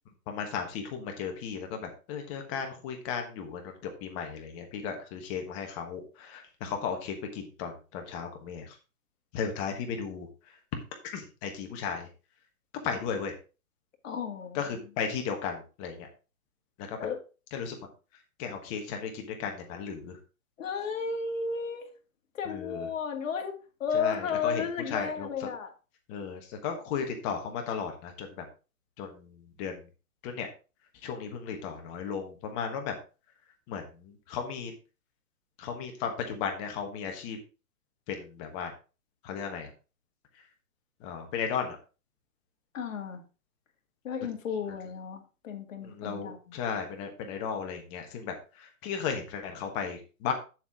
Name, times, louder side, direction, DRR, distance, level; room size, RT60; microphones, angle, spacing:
voice 1, 0.3-8.8 9.3-10.3 11.1-12.1 12.8-13.4 14.5-16.1 16.8-17.0 17.5-17.8 18.4-20.2 22.5-22.9 23.9-25.3 26.1-28.4 29.0-29.9 30.2-30.5 31.0-32.9 33.7-34.7 35.6-37.4 38.1-38.7 39.2-39.7 41.0-41.8 45.8-50.3, left 6 dB, 20° left, 1.3 m, -35 dB
voice 2, 14.0-14.8 17.0-17.2 20.6-21.9 22.3-25.7 42.7-43.2 44.0-46.6, left 6 dB, 60° left, 2.1 m, -33 dB
7.9 x 7.2 x 3.6 m
hypercardioid pair, 155°, 44 cm